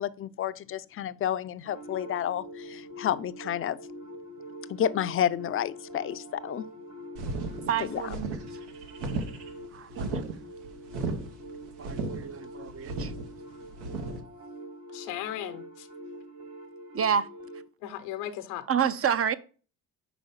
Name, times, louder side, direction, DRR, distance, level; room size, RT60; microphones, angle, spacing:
voice 1, 0.0-3.8 4.7-6.7 7.8-8.2, left 10 dB, 35° left, 0.4 m, -30 dB
sound 1, 1.6-17.6, equal, 65° right, 3.3 m, -44 dB
sound 2, 7.2-14.2, right 3 dB, 90° right, 1.1 m, -35 dB
voice 2, 7.7-8.3 9.7-10.3 11.8-13.1 16.9-17.3 18.7-19.3, right 7 dB, 40° right, 0.5 m, -29 dB
voice 3, 14.9-15.9 17.8-18.6, left 12 dB, 90° left, 0.8 m, -36 dB
5.0 x 4.4 x 5.6 m
supercardioid pair, 75°, 38 cm